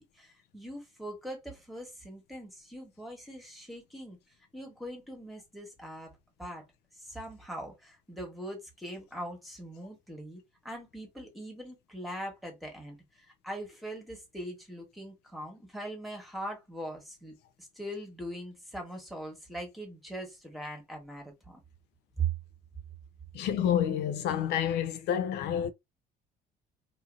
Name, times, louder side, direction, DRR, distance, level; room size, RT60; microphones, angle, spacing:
voice 1, 0.0-4.2 4.5-6.1 6.4-6.6 7.0-21.6 22.2-22.3, right 2 dB, ahead, 1.3 m, -41 dB
voice 2, 23.3-25.7, left 9 dB, 80° left, 0.4 m, -29 dB
2.8 x 2.5 x 2.4 m
cardioid pair, 110°, 17 cm